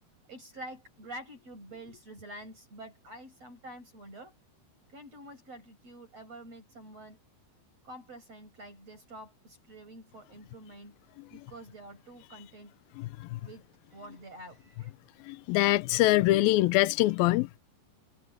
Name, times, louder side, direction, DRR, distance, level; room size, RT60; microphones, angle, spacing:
voice 1, 0.3-4.3 4.9-7.2 7.8-11.0 11.3-12.7 13.4-14.9, right 1 dB, 40° right, 8.3 m, -47 dB
voice 2, 15.3-17.6, left 17 dB, 80° left, 2.4 m, -24 dB
omnidirectional pair, 4.5 m